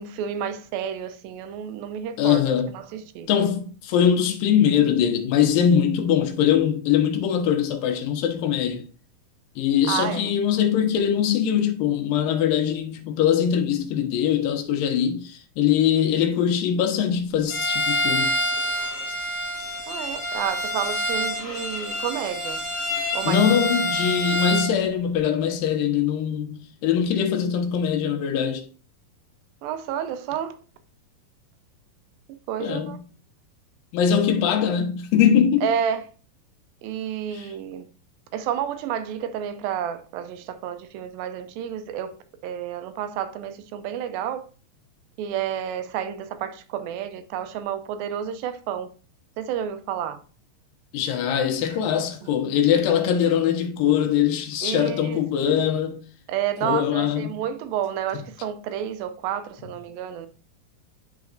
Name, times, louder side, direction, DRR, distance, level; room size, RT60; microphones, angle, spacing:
voice 1, 0.0-2.4 2.7-3.3 9.9-10.3 19.9-22.6 23.1-23.4 29.6-30.6 32.5-33.0 35.6-36.1 36.8-37.9 38.3-42.1 42.4-44.5 45.2-48.9 49.4-50.2 51.7-51.8 54.6-55.2 55.5-55.6 56.3-60.3, right 9 dB, 90° right, 2.4 m, -30 dB
voice 2, 2.2-2.7 3.3-8.9 9.6-18.4 23.3-28.6 32.6-32.9 33.9-35.7 37.3-37.5 50.9-56.0 56.6-57.4, left 8 dB, 80° left, 2.6 m, -22 dB
Bowed string instrument, 17.5-24.7, left 1 dB, 40° left, 1.0 m, -27 dB
10.5 x 4.0 x 2.5 m
omnidirectional pair, 4.1 m